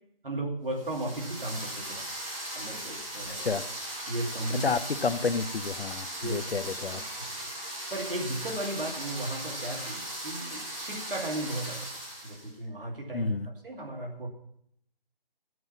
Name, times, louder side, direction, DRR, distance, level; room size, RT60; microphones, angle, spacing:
voice 1, 0.2-2.1 2.5-3.5 4.1-4.7 6.2-6.4 6.9-7.5 7.9-11.9 12.2-14.3, right 1 dB, 65° right, 1 dB, 2.5 m, -35 dB
sound 1, 0.8-12.5, right 1 dB, 35° right, 3.5 m, -38 dB
voice 2, 3.3-3.7 4.6-7.0 13.1-13.5, left 4 dB, 80° left, 13 dB, 0.8 m, -30 dB
13.0 x 7.8 x 5.7 m, 0.72 s
figure-of-eight pair, 170°, 29 cm